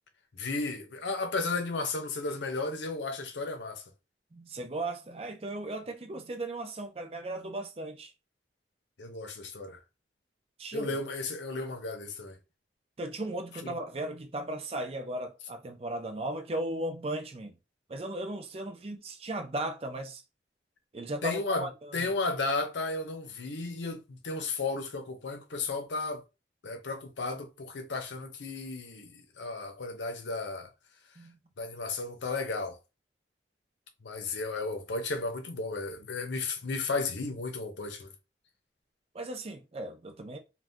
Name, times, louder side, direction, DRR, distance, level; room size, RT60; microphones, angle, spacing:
voice 1, 0.3-3.8 9.0-9.8 10.7-12.4 13.6-13.8 21.2-21.7 21.9-26.2 26.6-30.7 31.6-32.8 34.0-38.1, left 3 dB, 85° left, 0.7 m, -34 dB
voice 2, 4.3-8.1 10.6-11.0 13.0-17.6 17.9-20.2 20.9-22.1 31.2-31.4 39.1-40.4, right 1 dB, 35° right, 0.5 m, -36 dB
2.7 x 2.2 x 3.5 m
head